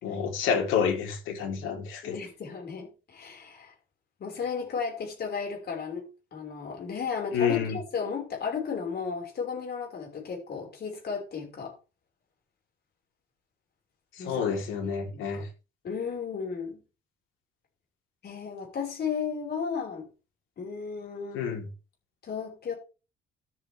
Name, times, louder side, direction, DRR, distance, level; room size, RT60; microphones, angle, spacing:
voice 1, 0.0-2.1 7.3-7.8 14.2-15.5 21.3-21.6, left 7 dB, 80° left, 4.0 m, -28 dB
voice 2, 2.0-3.7 4.2-6.0 6.3-11.7 14.2-14.6 15.1-15.4 15.8-16.8 18.2-20.1 20.6-21.4 22.2-22.7, left 6 dB, 50° left, 5.8 m, -34 dB
12.5 x 8.1 x 3.7 m
cardioid pair, 105°, 20 cm